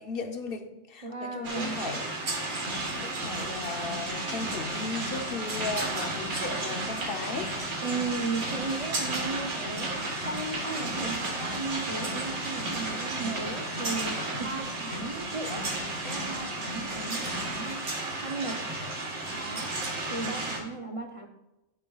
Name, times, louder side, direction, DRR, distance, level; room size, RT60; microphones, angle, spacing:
voice 1, 0.0-2.1 3.0-7.7 8.5-8.6 10.9-11.4, left 4 dB, 50° left, 6 dB, 0.8 m, -36 dB
voice 2, 1.0-1.8 7.8-9.9 10.2-15.7 16.0-17.9 18.2-18.6 19.3-19.7 20.1-21.3, right 3 dB, 35° right, 4 dB, 0.6 m, -36 dB
sound 1, 1.4-20.6, right 2 dB, 85° right, 2.2 m, -33 dB
sound 2, 2.5-17.8, left 3 dB, 70° left, 1.3 m, -43 dB
11.5 x 9.3 x 2.4 m, 0.95 s
omnidirectional pair, 1.5 m